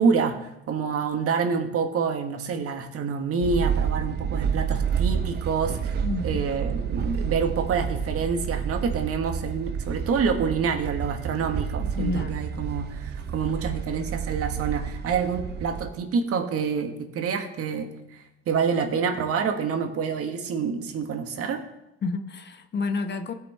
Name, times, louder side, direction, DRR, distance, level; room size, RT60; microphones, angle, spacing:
voice 1, 0.0-6.0 6.2-18.2 18.5-21.6, right 5 dB, 50° right, 6 dB, 1.5 m, -27 dB
sound 1, 3.4-15.9, right 7 dB, 35° right, 0.7 m, -29 dB
voice 2, 6.0-6.5 11.8-12.3 22.0-23.3, left 3 dB, 35° left, 8 dB, 1.0 m, -30 dB
16.5 x 6.0 x 3.4 m, 0.90 s
hypercardioid pair, 80°, 30 cm